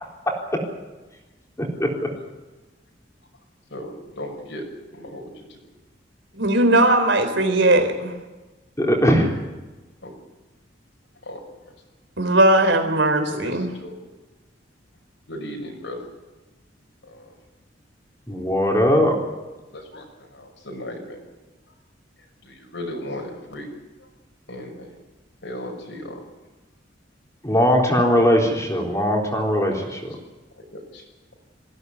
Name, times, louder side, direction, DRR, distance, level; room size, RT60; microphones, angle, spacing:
voice 1, 1.6-1.9 8.8-9.3 18.3-19.2 27.4-30.2, equal, 15° left, 0 dB, 3.9 m, -20 dB
voice 2, 3.7-4.6 4.9-5.7 10.0-10.1 11.2-11.4 13.3-14.1 15.3-16.0 17.0-17.3 19.7-21.3 22.4-23.7 24.0-24.1 24.5-25.0 25.4-26.2 30.7-31.0, left 1 dB, 80° left, 1 dB, 6.2 m, -36 dB
voice 3, 6.3-8.1 12.2-13.7, right 1 dB, 70° right, 7 dB, 4.1 m, -18 dB
21.5 x 16.0 x 9.6 m, 1.2 s
head